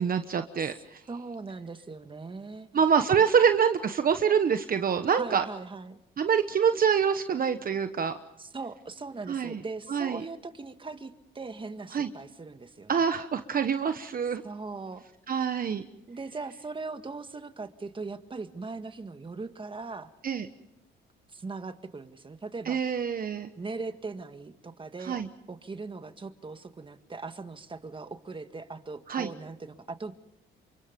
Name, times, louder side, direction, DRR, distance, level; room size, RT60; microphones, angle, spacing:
voice 1, 0.0-1.0 2.7-5.4 6.2-8.2 9.3-9.6 9.9-10.2 11.9-12.1 12.9-14.4 15.3-15.8 20.2-20.5 22.7-23.5 25.0-25.3 29.1-29.3, right 7 dB, 45° right, 9 dB, 1.1 m, -25 dB
voice 2, 1.1-2.7 5.2-6.0 8.4-12.9 14.4-15.0 15.3-15.4 16.1-20.1 21.3-22.8 23.6-25.2 25.5-30.1, right 3 dB, 25° right, 9 dB, 1.7 m, -40 dB
28.5 x 24.5 x 5.3 m, 0.83 s
cardioid pair, 90°, 20 cm